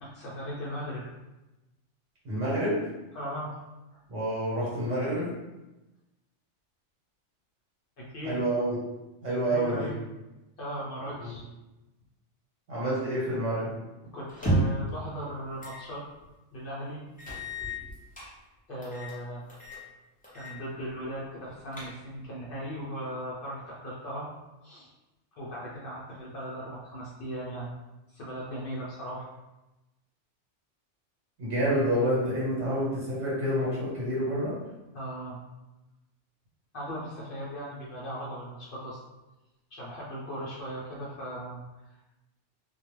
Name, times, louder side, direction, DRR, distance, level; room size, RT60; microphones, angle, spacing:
voice 1, 0.0-1.0 3.1-3.6 3.9-4.0 8.0-8.4 9.5-10.0 10.6-11.4 14.1-16.0 16.5-17.0 18.7-19.4 20.3-24.3 24.6-24.9 25.4-27.7 28.1-29.3 34.9-35.4 36.7-39.0 39.7-41.6 41.9-42.1, equal, 60° left, -6 dB, 0.6 m, -38 dB
voice 2, 2.2-2.8 4.1-5.3 8.2-8.8 9.2-9.9 11.2-11.3 12.7-13.7 31.4-34.6, equal, 80° right, -7 dB, 1.2 m, -28 dB
sound 1, 14.3-14.9 15.6-15.8 16.2-16.3 17.2-18.3 18.8-19.2 19.5-19.8 20.2-20.6 20.9-21.0 21.5-22.2, right 2 dB, 15° left, 0.3 m, -31 dB
2.3 x 2.2 x 2.9 m, 1.0 s
omnidirectional pair, 1.2 m